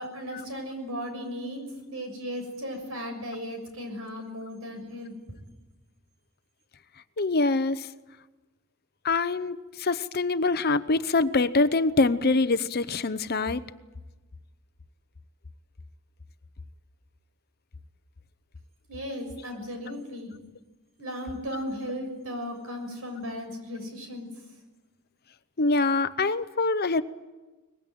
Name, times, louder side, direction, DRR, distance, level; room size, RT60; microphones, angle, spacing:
voice 1, 0.0-5.1 18.9-20.3 21.0-24.3, equal, 70° right, 5 dB, 6.8 m, -36 dB
voice 2, 7.2-7.9 9.0-13.6 25.6-27.0, left 3 dB, 45° left, 13 dB, 0.8 m, -24 dB
23.0 x 21.0 x 9.2 m, 1.2 s
head